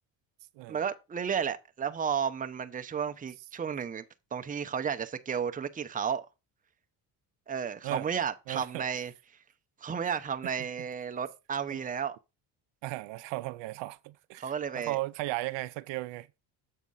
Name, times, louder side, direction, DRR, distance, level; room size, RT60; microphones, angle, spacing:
voice 1, 0.7-4.0 4.3-6.2 7.5-9.1 9.8-12.2 14.4-15.0, right 7 dB, 20° right, 0.6 m, -33 dB
voice 2, 8.5-8.9 11.7-11.8 12.8-16.3, right 19 dB, 75° right, 0.6 m, -36 dB
7.5 x 3.6 x 5.4 m
cardioid pair, 95°, 44 cm